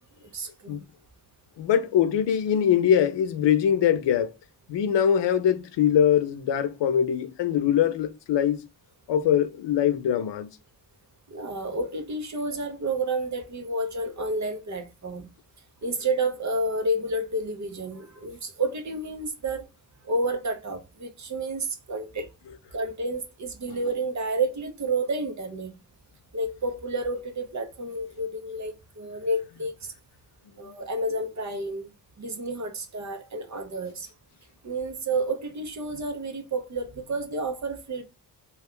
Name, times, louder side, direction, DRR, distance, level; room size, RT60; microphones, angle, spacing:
voice 1, 0.3-0.8 11.3-15.3 15.8-19.6 20.0-22.3 22.7-25.8 26.3-29.9 30.6-34.1 34.6-38.0, right 2 dB, 40° right, 0.9 m, -30 dB
voice 2, 1.6-4.3 4.7-8.7 9.1-10.5, left 9 dB, 85° left, 0.6 m, -22 dB
3.0 x 2.3 x 3.5 m
wide cardioid pair, 120°, 41 cm